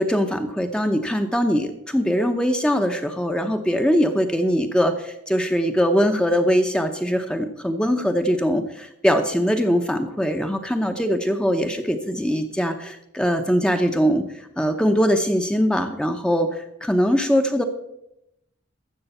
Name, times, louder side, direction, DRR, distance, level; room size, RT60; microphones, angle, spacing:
voice 1, 0.0-14.3 14.6-17.6, equal, 5° left, 6 dB, 0.7 m, -22 dB
13.0 x 7.8 x 5.5 m, 0.81 s
head